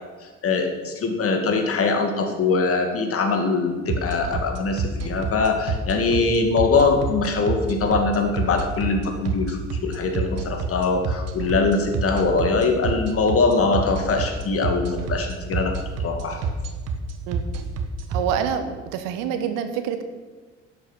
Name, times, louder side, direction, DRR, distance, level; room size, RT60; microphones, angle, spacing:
voice 1, 0.4-15.7 16.0-16.4, left 4 dB, 40° left, 5 dB, 2.1 m, -22 dB
sound 1, 3.9-18.2, right 4 dB, 45° right, 1.4 m, -27 dB
voice 2, 18.1-18.6 18.9-20.0, right 9 dB, 60° right, 9 dB, 1.2 m, -26 dB
11.5 x 8.2 x 6.4 m, 1.4 s
figure-of-eight pair, 55°, 36 cm